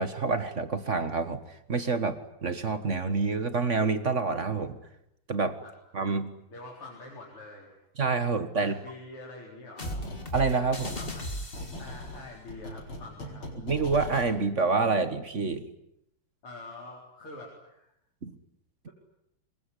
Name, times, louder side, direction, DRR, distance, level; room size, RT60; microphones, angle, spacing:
voice 1, 0.0-1.4 1.7-4.8 5.3-5.6 5.9-6.3 8.0-8.7 10.3-10.9 13.6-15.7 18.2-18.3, right 4 dB, 35° right, 11 dB, 1.6 m, -27 dB
voice 2, 6.5-7.8 8.6-10.0 10.6-11.4 11.8-13.5 16.4-17.9, left 2 dB, 85° left, -1 dB, 5.2 m, -45 dB
sound 1, 9.8-10.5 10.8-14.3, left 1 dB, 70° left, 5.6 m, -40 dB
sound 2, 9.8-12.1, equal, 25° left, 2.9 m, -37 dB
26.0 x 22.5 x 10.0 m, 0.80 s
omnidirectional pair, 2.4 m